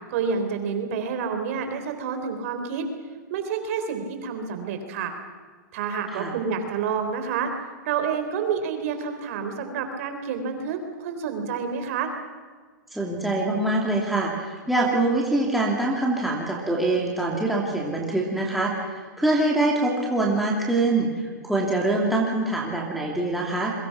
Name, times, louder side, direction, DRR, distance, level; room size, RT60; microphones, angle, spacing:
voice 1, 0.1-2.9 3.3-5.1 5.7-7.5 7.9-12.1, right 6 dB, 45° right, 6 dB, 4.0 m, -28 dB
voice 2, 12.9-23.7, right 2 dB, ahead, -3 dB, 2.7 m, -24 dB
28.0 x 23.0 x 6.0 m, 1.5 s
hypercardioid pair, 160°, 10 cm